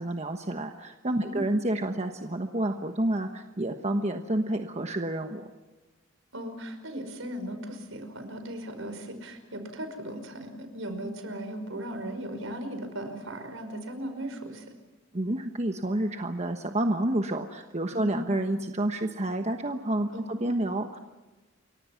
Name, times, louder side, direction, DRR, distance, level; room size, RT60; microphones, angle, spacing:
voice 1, 0.0-5.5 15.1-21.0, right 1 dB, 35° right, 5 dB, 1.2 m, -29 dB
voice 2, 1.0-1.4 6.3-14.6 17.9-18.3 20.1-20.5, right 1 dB, 75° right, 7 dB, 5.2 m, -37 dB
29.5 x 23.5 x 5.9 m, 1.2 s
head